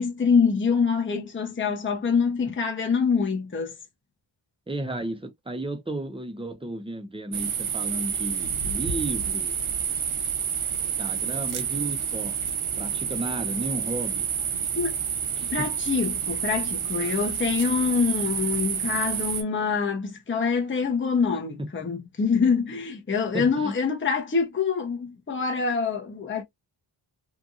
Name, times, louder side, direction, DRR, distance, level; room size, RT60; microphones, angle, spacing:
voice 1, 0.0-3.7 14.7-15.0 15.5-26.4, left 5 dB, 25° left, 0.7 m, -25 dB
voice 2, 4.7-9.6 11.0-12.4 12.8-14.3 15.4-15.7 21.6-21.7 23.3-23.7, right 1 dB, 10° right, 0.7 m, -33 dB
sound 1, 7.3-19.4, right 7 dB, 90° right, 0.7 m, -29 dB
2.9 x 2.5 x 2.4 m
wide cardioid pair, 95°, 48 cm